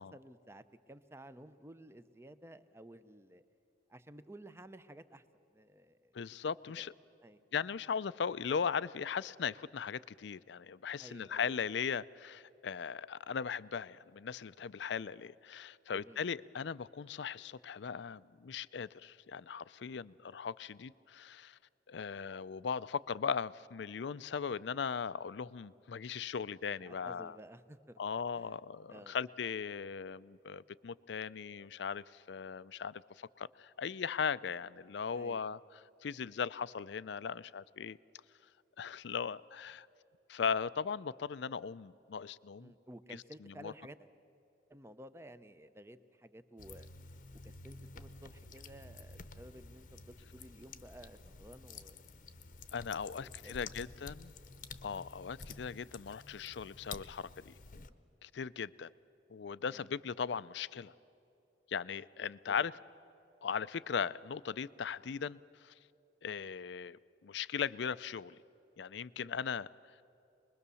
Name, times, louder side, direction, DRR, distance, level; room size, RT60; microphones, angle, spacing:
voice 1, 0.0-3.4 3.9-5.2 5.5-6.2 6.8-6.9 7.2-7.4 11.0-11.6 15.9-16.2 26.8-28.0 28.4-28.6 28.9-29.2 35.1-35.5 42.6-44.1 44.7-46.9 47.4-52.0 53.0-53.8 59.6-59.8 62.5-62.6 69.2-69.4, right 1 dB, 15° right, 0.6 m, -54 dB
voice 2, 6.1-6.9 7.5-21.6 21.9-27.4 28.0-35.6 36.0-38.0 38.8-39.9 40.3-42.7 43.4-43.7 52.7-54.3 54.8-57.5 58.2-58.9 59.3-60.9 61.7-62.7 63.4-65.7 66.2-68.4 68.8-69.7, left 6 dB, 70° left, 0.4 m, -38 dB
sound 1, 46.6-57.9, left 4 dB, 45° left, 0.8 m, -51 dB
25.0 x 21.5 x 7.0 m
head